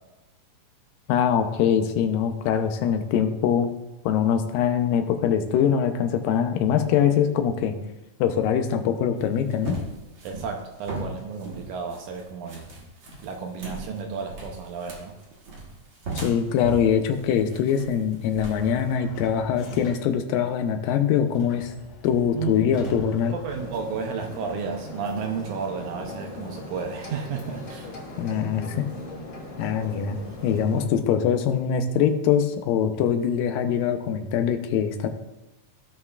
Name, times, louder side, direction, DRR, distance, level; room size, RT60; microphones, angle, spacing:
voice 1, 1.1-3.7 4.1-7.8 8.2-9.8 16.2-21.7 22.0-23.3 28.2-28.9 29.6-35.1, left 8 dB, 85° left, 7 dB, 2.4 m, -23 dB
sound 1, 9.2-18.8, right 2 dB, 55° right, 1.4 m, -37 dB
voice 2, 10.2-12.7 13.2-15.2 22.3-22.9 23.3-27.9, right 6 dB, 80° right, 3 dB, 1.9 m, -32 dB
sound 2, 18.4-20.2 21.4-24.2, left 1 dB, 65° left, 2.6 m, -44 dB
sound 3, 23.5-30.9, left 1 dB, 40° left, 1.9 m, -39 dB
16.5 x 5.5 x 2.4 m, 1.0 s
omnidirectional pair, 4.0 m